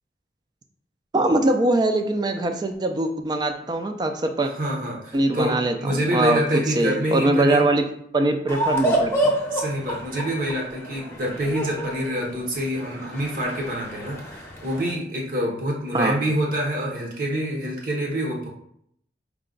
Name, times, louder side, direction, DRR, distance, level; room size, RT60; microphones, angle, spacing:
voice 1, 1.1-4.5 5.1-7.9 8.1-9.3 15.9-16.2, right 2 dB, 25° right, 6 dB, 0.3 m, -22 dB
voice 2, 4.4-7.7 9.4-18.5, equal, 50° right, -1 dB, 0.8 m, -26 dB
sound 1, 8.5-14.9, right 1 dB, 15° left, 0.7 m, -28 dB
4.7 x 2.2 x 3.8 m, 0.70 s
head